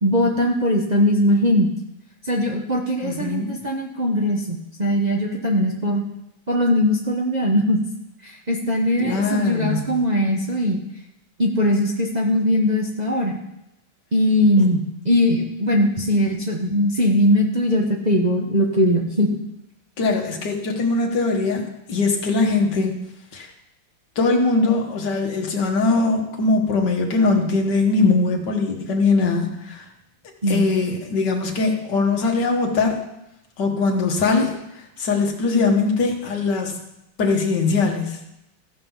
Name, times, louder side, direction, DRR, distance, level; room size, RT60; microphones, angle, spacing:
voice 1, 0.0-1.7 2.2-6.0 6.5-7.8 8.2-10.8 11.4-13.4 14.1-19.4 30.4-30.7, equal, 35° right, -1 dB, 0.6 m, -20 dB
voice 2, 3.0-3.5 9.0-9.9 20.0-23.0 23.3-23.5 24.2-29.8 30.5-33.0 33.6-34.6 35.0-36.7 37.2-38.2, left 3 dB, 60° left, 1 dB, 2.0 m, -21 dB
14.5 x 5.5 x 5.5 m, 0.87 s
omnidirectional pair, 2.2 m